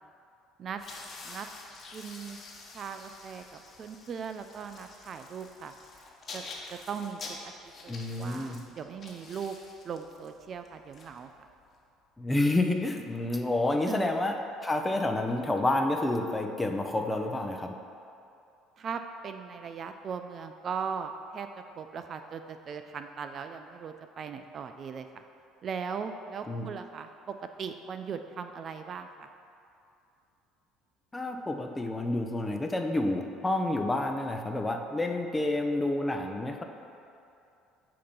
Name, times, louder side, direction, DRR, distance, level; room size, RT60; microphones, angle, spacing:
sound 1, 0.7-11.7, left 3 dB, 45° left, 1.1 m, -47 dB
voice 1, 1.9-2.4 2.7-5.7 6.3-6.4 6.7-7.4 7.8-9.6 9.8-11.3 13.9-14.1 18.8-21.5 21.8-25.2 25.6-29.3, right 6 dB, 45° right, 8 dB, 0.3 m, -39 dB
voice 2, 7.9-8.6 12.2-17.7 26.5-26.7 31.1-36.6, left 2 dB, 15° left, 4 dB, 0.7 m, -29 dB
8.4 x 2.9 x 5.3 m, 2.6 s
hypercardioid pair, 70°, 0 cm